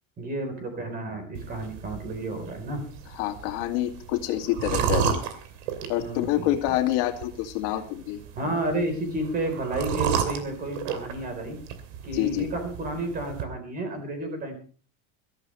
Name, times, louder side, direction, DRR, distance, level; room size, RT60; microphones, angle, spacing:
voice 1, 0.2-2.8 4.7-5.1 6.0-6.6 8.4-11.6 12.0-14.6, right 1 dB, 25° right, 6 dB, 4.0 m, -31 dB
sound 1, 1.4-13.4, right 8 dB, 80° right, 2.8 m, -33 dB
voice 2, 3.1-5.2 5.9-8.2 12.1-12.5, left 13 dB, 70° left, 4 dB, 2.4 m, -27 dB
21.0 x 13.5 x 3.2 m, 0.40 s
cardioid pair, 175°, 36 cm